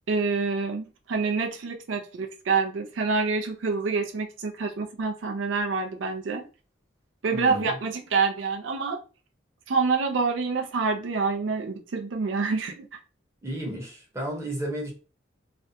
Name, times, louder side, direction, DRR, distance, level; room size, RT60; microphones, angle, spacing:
voice 1, 0.1-6.4 7.2-9.0 9.7-12.9, right 4 dB, 85° right, 4 dB, 0.4 m, -27 dB
voice 2, 7.3-7.8 13.4-14.9, right 1 dB, 15° right, -1 dB, 0.7 m, -33 dB
2.5 x 2.1 x 2.7 m, 0.34 s
head